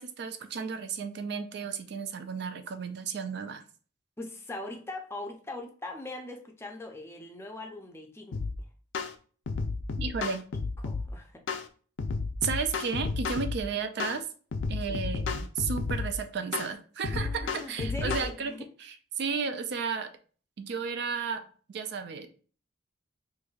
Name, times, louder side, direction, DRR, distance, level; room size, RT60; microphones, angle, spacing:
voice 1, 0.0-3.6 10.0-10.4 12.4-14.3 14.7-18.5 18.8-20.1 20.6-21.4 21.7-22.3, right 5 dB, 60° right, 9 dB, 0.4 m, -33 dB
voice 2, 4.2-8.4 10.0-10.1 10.8-11.4 14.9-15.0 17.1-18.6, left 2 dB, 15° left, 2 dB, 0.5 m, -41 dB
sound 1, 8.3-8.5 8.9-9.1 9.5-11.1 11.5-11.7 12.0-13.6 14.0-14.2 14.5-16.1 16.5-16.7 17.0-18.3, left 4 dB, 75° left, 0.5 m, -32 dB
4.6 x 2.6 x 2.3 m, 0.41 s
head